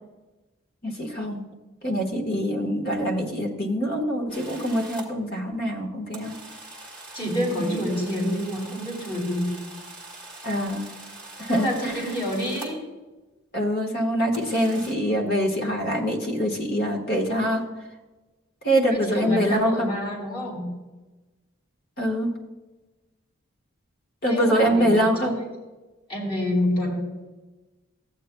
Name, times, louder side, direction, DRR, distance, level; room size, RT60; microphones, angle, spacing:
voice 1, 0.8-1.4 1.8-6.4 7.6-7.8 10.4-10.8 11.4-12.1 13.5-17.7 18.6-19.9 22.0-22.3 24.2-25.3, equal, 45° left, 1 dB, 1.5 m, -24 dB
sound 1, 4.3-5.1 6.1-12.9 14.3-14.9, right 2 dB, 5° left, 1.5 m, -43 dB
voice 2, 7.1-9.5 11.5-12.8 18.9-20.7 24.2-25.4 26.1-27.0, left 1 dB, 25° left, -5 dB, 2.8 m, -28 dB
14.0 x 8.5 x 2.3 m, 1.2 s
head